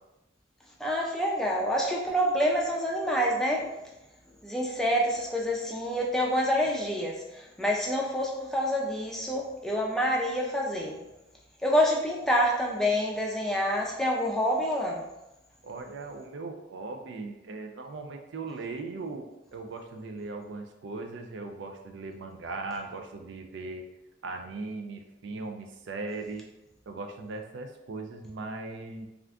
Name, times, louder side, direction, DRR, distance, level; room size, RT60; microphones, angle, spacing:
voice 1, 0.8-3.8 4.4-11.0 11.6-15.0, equal, 5° left, -2 dB, 0.4 m, -27 dB
voice 2, 15.6-23.8 24.2-26.4 26.9-29.1, right 3 dB, 75° right, 5 dB, 0.4 m, -38 dB
2.4 x 2.4 x 3.3 m, 0.93 s
head